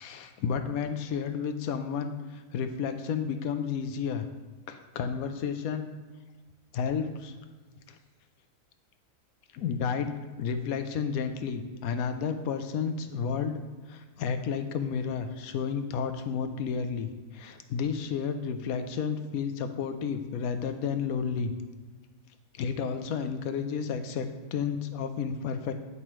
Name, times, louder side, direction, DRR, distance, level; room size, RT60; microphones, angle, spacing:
voice 1, 0.0-4.3 4.7-5.9 6.7-7.3 7.9-8.0 9.5-13.6 13.9-21.5 22.6-25.7, left 6 dB, 75° left, 8 dB, 1.0 m, -31 dB
9.7 x 5.4 x 3.0 m, 1.3 s
omnidirectional pair, 1.6 m